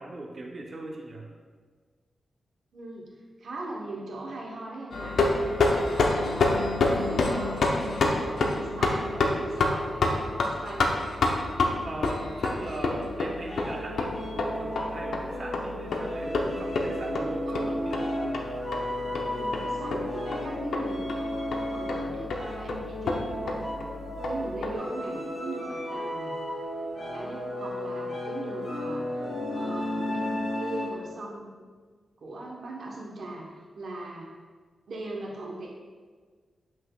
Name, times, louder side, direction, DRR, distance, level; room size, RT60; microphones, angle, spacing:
voice 1, 0.0-1.3 11.8-18.0, right 2 dB, 40° right, -1 dB, 0.7 m, -39 dB
voice 2, 2.7-3.1 3.4-5.2 5.5-6.7 7.1-10.9 17.5-17.8 19.3-23.7 24.3-26.4 27.1-29.2 29.5-31.6 32.2-34.3 34.9-35.7, right 2 dB, 75° right, -3 dB, 1.0 m, -40 dB
sound 1, 4.9-24.7, left 2 dB, 85° left, 0.7 m, -29 dB
sound 2, 13.4-31.1, left 1 dB, 45° left, 1.9 m, -34 dB
7.8 x 6.0 x 2.4 m, 1.5 s
wide cardioid pair, 135°, 0 cm